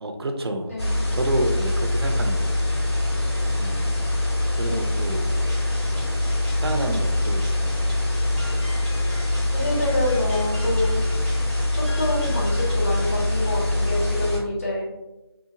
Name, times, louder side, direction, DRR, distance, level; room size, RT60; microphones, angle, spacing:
voice 1, 0.0-2.6 2.9-3.2 3.5-4.0 4.5-5.6 6.2-6.3 6.6-7.7, right 1 dB, 70° right, 5 dB, 0.4 m, -30 dB
sound 1, 0.8-14.4, left 1 dB, 90° left, 1.2 m, -24 dB
sound 2, 5.3-13.6, left 1 dB, 10° right, 0.4 m, -44 dB
voice 2, 9.5-11.0 11.8-14.9, left 1 dB, 35° left, -3 dB, 0.6 m, -27 dB
2.7 x 2.1 x 2.7 m, 1.0 s
figure-of-eight pair, 165°, 14 cm